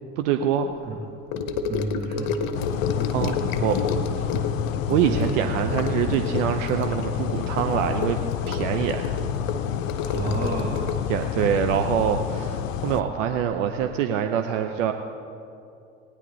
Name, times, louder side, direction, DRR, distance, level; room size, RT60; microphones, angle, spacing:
voice 1, 0.2-0.9 3.1-3.8 4.1-4.3 4.9-8.2 8.5-9.2 11.1-14.9, right 9 dB, 70° right, 6 dB, 0.7 m, -25 dB
Gurgling / Sink (filling or washing) / Trickle dribble, 1.3-13.0 13.2-13.6 13.8-13.9, left 5 dB, 55° left, 1.0 m, -31 dB
voice 2, 1.7-2.4 4.9-5.5 10.1-10.9, right 2 dB, 25° right, 0 dB, 1.7 m, -31 dB
sound 1, 2.5-13.0, left 9 dB, 80° left, 0.6 m, -29 dB
18.0 x 9.9 x 3.9 m, 2.6 s
hypercardioid pair, 70°, 39 cm